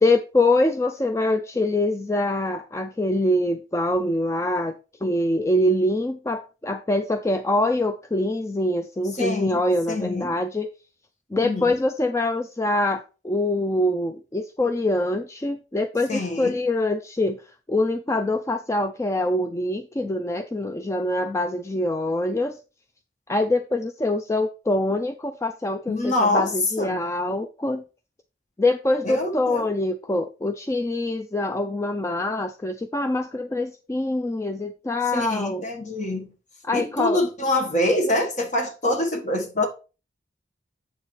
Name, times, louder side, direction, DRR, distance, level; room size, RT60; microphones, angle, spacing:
voice 1, 0.0-10.7 11.3-17.4 17.7-22.6 23.3-27.8 28.6-35.6 36.6-37.2, left 1 dB, 15° left, 0.4 m, -24 dB
voice 2, 9.1-9.6 9.9-10.3 11.4-11.7 16.1-16.6 25.9-27.0 29.0-29.7 35.1-36.3 36.7-39.7, left 1 dB, 40° left, 1.5 m, -25 dB
7.9 x 6.6 x 3.2 m
head